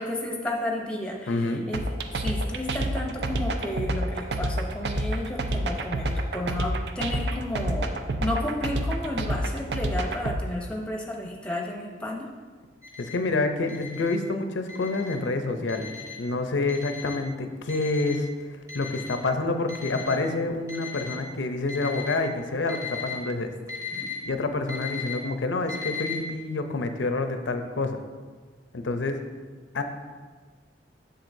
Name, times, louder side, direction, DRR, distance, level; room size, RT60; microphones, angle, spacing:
voice 1, 0.0-1.8 2.2-12.3 23.9-24.1, left 1 dB, 5° left, 0 dB, 0.8 m, -32 dB
voice 2, 1.3-1.7 13.0-18.3 18.7-23.5 24.2-28.0 28.7-29.2 29.7-29.8, left 3 dB, 90° left, 7 dB, 0.6 m, -28 dB
sound 1, 1.7-10.4, right 1 dB, 65° right, 0.5 m, -28 dB
Alarm, 12.8-13.1 13.7-14.1 14.7-15.1 15.7-16.1 16.7-17.1 17.7-18.2 18.7-19.2 19.7-20.2 20.7-21.2 21.7-22.2 22.7-23.1 23.7-24.1 24.7-25.1 25.7-26.1, left 7 dB, 20° right, 1.2 m, -36 dB
7.6 x 6.8 x 2.7 m, 1.5 s
head